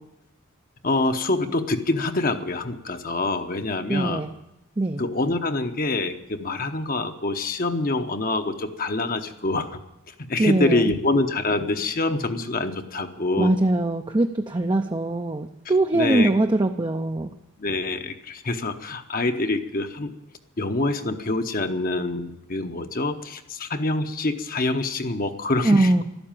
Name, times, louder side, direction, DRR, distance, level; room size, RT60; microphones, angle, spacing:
voice 1, 0.8-4.3 5.0-9.8 10.3-13.5 15.9-16.3 17.6-20.1 20.6-26.0, left 2 dB, 40° left, 7 dB, 0.9 m, -25 dB
voice 2, 3.9-4.3 4.8-5.0 10.4-10.9 13.4-17.3 25.6-26.0, right 2 dB, 20° right, 5 dB, 0.5 m, -22 dB
12.5 x 12.5 x 8.9 m, 0.89 s
head